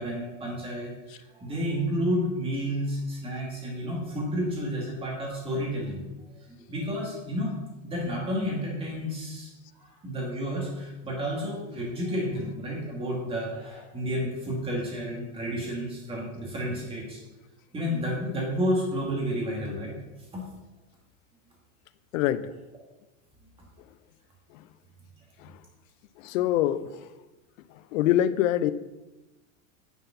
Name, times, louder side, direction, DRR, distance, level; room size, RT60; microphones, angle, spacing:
voice 1, 0.0-6.0 6.4-7.5 7.8-9.5 9.8-17.2 17.7-20.0 20.3-20.4, equal, 15° right, 2.4 m, -31 dB
voice 2, 22.1-22.5 26.2-26.9 27.9-28.7, left 12 dB, 65° left, 0.7 m, -24 dB
10.5 x 5.7 x 6.0 m
supercardioid pair, 175°, 43 cm